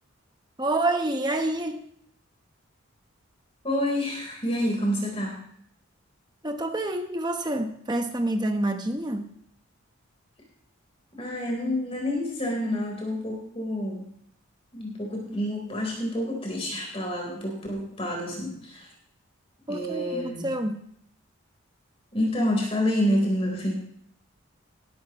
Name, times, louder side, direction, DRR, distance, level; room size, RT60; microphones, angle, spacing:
voice 1, 0.6-1.8 6.4-9.3 19.7-20.8, right 1 dB, 20° right, 5 dB, 1.1 m, -28 dB
voice 2, 3.6-5.3 11.2-14.0 14.7-18.9 19.7-20.5 22.1-23.7, left 1 dB, 25° left, 0 dB, 4.0 m, -28 dB
19.0 x 12.0 x 3.1 m, 0.66 s
head